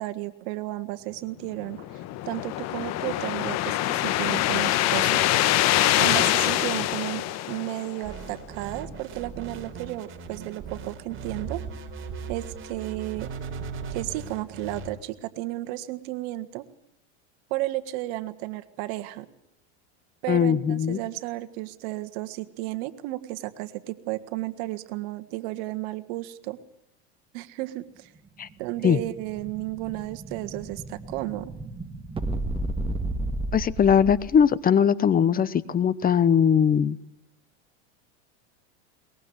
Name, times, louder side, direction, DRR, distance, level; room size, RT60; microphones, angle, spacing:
voice 1, 0.0-5.2 6.0-11.6 12.3-13.3 13.9-16.6 17.5-19.2 20.2-26.6 27.3-28.1 28.6-31.5, right 17 dB, 60° right, 10 dB, 1.7 m, -33 dB
sound 1, 1.6-8.2, left 14 dB, 50° left, 1.4 m, -24 dB
sound 2, 8.0-14.9, right 5 dB, 35° right, 3.9 m, -38 dB
voice 2, 20.3-21.0 28.4-28.5 28.8-29.0 33.5-37.0, left 8 dB, 25° left, 17 dB, 0.9 m, -20 dB
Explosion, 28.4-34.5, right 2 dB, 15° right, 1.8 m, -33 dB
22.5 x 20.5 x 8.1 m, 0.85 s
supercardioid pair, 115°, 35 cm